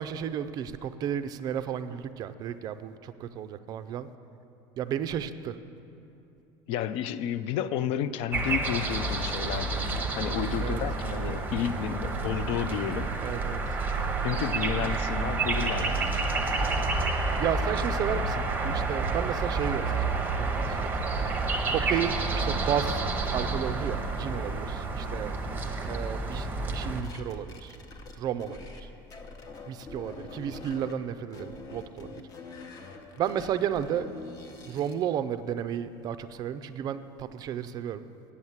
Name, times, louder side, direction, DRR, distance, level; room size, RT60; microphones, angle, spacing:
voice 1, 0.0-4.1 4.8-5.6 10.6-10.8 13.2-13.6 17.4-20.9 21.7-23.0 23.3-25.4 25.9-27.8 28.2-28.9 29.7-32.2 32.9-34.1 34.7-38.1, right 9 dB, 40° right, 12 dB, 0.4 m, -33 dB
voice 2, 6.7-13.1 14.2-16.3 18.1-18.2, left 9 dB, 60° left, 14 dB, 0.4 m, -31 dB
sound 1, 8.3-27.0, right 3 dB, 15° right, 0.8 m, -29 dB
sound 2, 25.9-28.8 29.1-30.9 31.3-35.0, left 3 dB, 35° left, 0.9 m, -44 dB
8.4 x 7.9 x 7.3 m, 2.8 s
cardioid pair, 145°, 11 cm